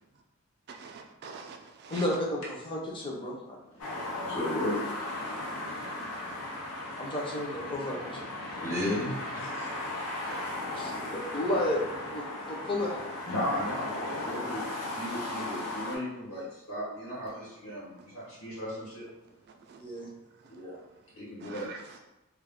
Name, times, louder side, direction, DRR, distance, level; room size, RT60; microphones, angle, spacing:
voice 1, 0.7-2.0 19.7-19.8 21.4-21.8, right 5 dB, 45° right, 0.3 m, -45 dB
voice 2, 1.9-2.4 2.6-3.6 7.0-8.3 10.7-11.8 12.1-13.0 19.8-20.1, left 1 dB, 20° left, 0.5 m, -32 dB
voice 3, 3.7-6.6 8.2-10.5 13.2-19.0 20.5-20.8 21.1-22.0, left 1 dB, 65° left, 1.2 m, -36 dB
sound 1, 3.8-16.0, left 2 dB, 90° left, 0.7 m, -36 dB
2.3 x 2.1 x 3.5 m
head